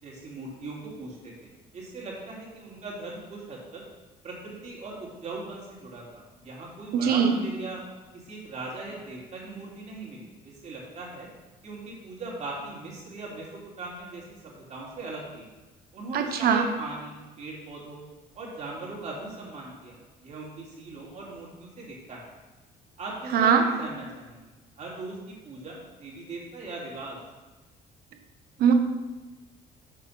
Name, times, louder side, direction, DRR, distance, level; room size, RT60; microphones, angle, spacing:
voice 1, 0.0-3.8 4.2-7.8 8.1-11.3 11.6-15.5 15.9-18.0 18.3-22.3 23.0-24.5 24.8-27.2, right 2 dB, 45° right, -4 dB, 2.8 m, -39 dB
voice 2, 6.9-7.3 16.1-16.6 23.3-23.6 28.6-28.7, right 7 dB, 65° right, 6 dB, 1.0 m, -21 dB
6.9 x 5.1 x 5.7 m, 1.1 s
cardioid pair, 110°, 17 cm